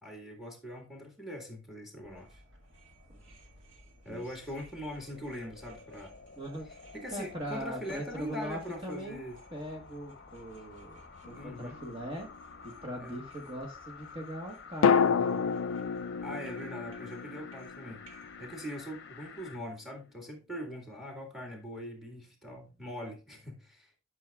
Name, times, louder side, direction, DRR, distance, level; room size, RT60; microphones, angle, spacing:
voice 1, 0.0-2.4 4.0-6.1 6.7-9.4 11.3-11.8 13.0-13.3 16.2-18.0 18.4-23.9, equal, ahead, 1.9 m, -42 dB
sound 1, 2.0-18.6, right 1 dB, 65° right, 1.9 m, -59 dB
sound 2, 4.7-19.6 20.1-20.2, left 5 dB, 55° left, 0.7 m, -51 dB
voice 2, 6.4-6.7 7.1-9.2 9.5-12.3 12.6-15.5, equal, 25° right, 1.3 m, -40 dB
sound 3, 11.2-12.4 14.8-18.8 19.0-19.1, left 6 dB, 85° left, 0.4 m, -30 dB
11.5 x 6.3 x 2.3 m
head